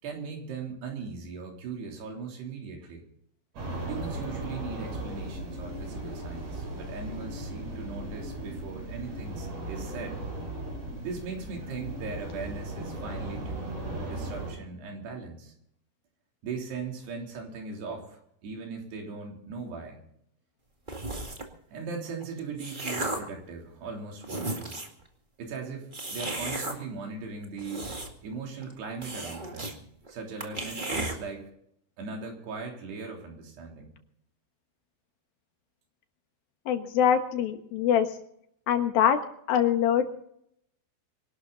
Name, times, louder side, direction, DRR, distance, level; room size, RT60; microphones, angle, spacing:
voice 1, 0.0-3.0 3.9-10.2 11.0-15.5 16.4-20.0 21.7-24.8 25.4-27.9 28.2-29.8 30.1-31.5 32.0-33.9, right 4 dB, 85° right, 1 dB, 5.6 m, -39 dB
sound 1, 3.5-14.5, right 1 dB, 70° right, 8.4 m, -37 dB
sound 2, 20.9-21.5 22.2-23.4 23.9-24.0 24.2-25.0 25.9-26.8 27.4-28.3 28.6-28.7 29.0-29.8 30.1-30.2 30.4-31.2, right 2 dB, 30° right, 0.9 m, -34 dB
voice 2, 36.7-38.1 38.7-39.2 39.5-40.1, left 9 dB, 70° left, 7 dB, 3.1 m, -23 dB
25.0 x 12.0 x 4.0 m, 0.70 s
omnidirectional pair, 4.6 m